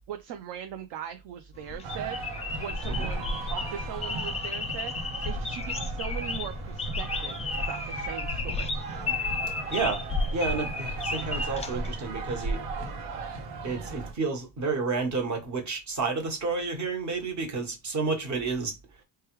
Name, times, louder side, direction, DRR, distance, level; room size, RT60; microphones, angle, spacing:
voice 1, 0.1-2.2 2.6-8.7, right 9 dB, 60° right, 0.6 m, -39 dB
sound 1, 1.5-12.4, left 3 dB, 15° left, 0.3 m, -33 dB
sound 2, 1.8-14.1, right 4 dB, 75° right, 1.0 m, -37 dB
voice 2, 9.7-10.0 10.3-12.6 13.6-18.7, right 4 dB, 35° right, 1.2 m, -30 dB
3.2 x 2.3 x 3.0 m
cardioid pair, 100°, 50 cm